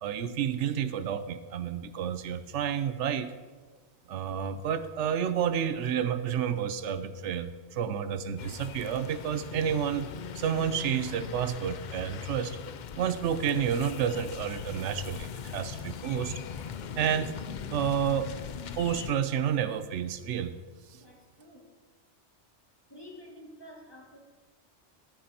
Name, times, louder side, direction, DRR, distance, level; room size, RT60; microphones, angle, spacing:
voice 1, 0.0-3.3 4.1-10.1 10.3-12.6 13.0-16.4 17.0-17.3 17.7-18.3 18.8-20.5, right 8 dB, 80° right, 12 dB, 0.9 m, -30 dB
sound 1, 8.4-19.1, left 8 dB, 60° left, 0.5 m, -40 dB
voice 2, 20.9-21.8 22.9-24.2, left 1 dB, 20° left, -2 dB, 2.0 m, -50 dB
13.5 x 12.0 x 2.9 m, 1.4 s
omnidirectional pair, 1.2 m